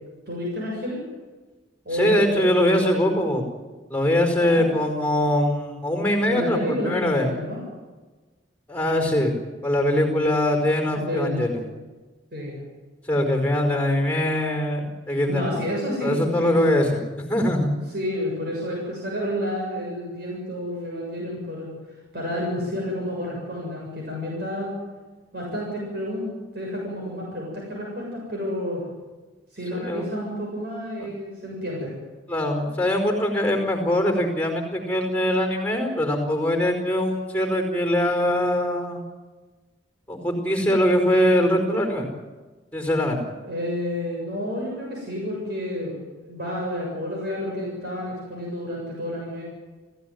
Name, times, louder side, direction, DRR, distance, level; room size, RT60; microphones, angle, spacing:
voice 1, 0.3-1.0 1.9-2.8 4.3-4.6 6.3-7.6 11.0-11.5 12.3-12.6 15.3-16.7 17.9-21.7 22.1-24.7 25.3-26.3 26.5-28.8 29.5-31.9 43.4-45.9 46.2-49.4, equal, 55° right, -2 dB, 7.4 m, -30 dB
voice 2, 1.9-3.4 3.9-7.3 8.7-9.3 9.6-11.6 13.0-15.6 16.0-17.0 17.3-17.7 29.7-30.0 32.3-39.0 40.1-42.1 42.7-43.2, left 1 dB, 5° left, 3 dB, 4.7 m, -22 dB
30.0 x 16.0 x 9.4 m, 1.3 s
head